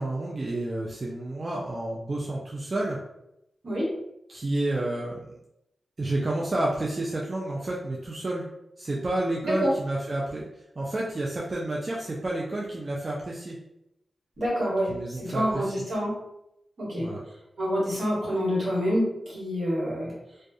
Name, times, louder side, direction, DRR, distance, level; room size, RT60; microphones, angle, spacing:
voice 1, 0.0-3.0 4.3-5.3 6.0-8.4 8.8-10.5 10.8-13.6 14.9-15.8 17.0-17.2, right 1 dB, 45° right, -4 dB, 0.4 m, -30 dB
voice 2, 14.4-14.9 15.2-16.1 16.8-17.1 17.6-20.1, equal, 75° right, -5 dB, 1.2 m, -27 dB
2.3 x 2.2 x 2.6 m, 0.84 s
cardioid pair, 55°, 0 cm